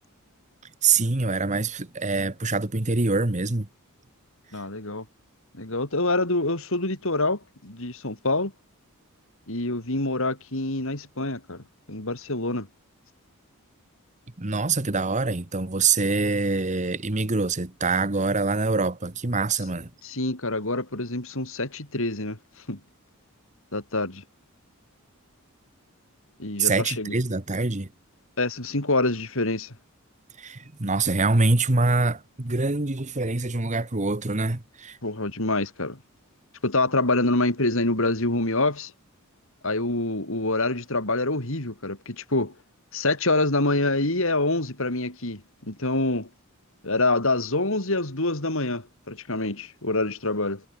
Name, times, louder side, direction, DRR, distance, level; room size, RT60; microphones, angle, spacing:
voice 1, 0.8-3.7 14.4-19.9 26.6-27.9 30.4-35.0, right 3 dB, 35° right, 1.3 m, -25 dB
voice 2, 4.5-5.0 5.5-8.5 9.5-12.7 20.0-22.4 22.7-22.8 23.7-24.2 26.4-27.1 28.4-29.7 35.0-36.0 36.6-38.9 39.6-42.5 42.9-46.3 46.8-50.6, left 2 dB, 60° left, 3.9 m, -26 dB
head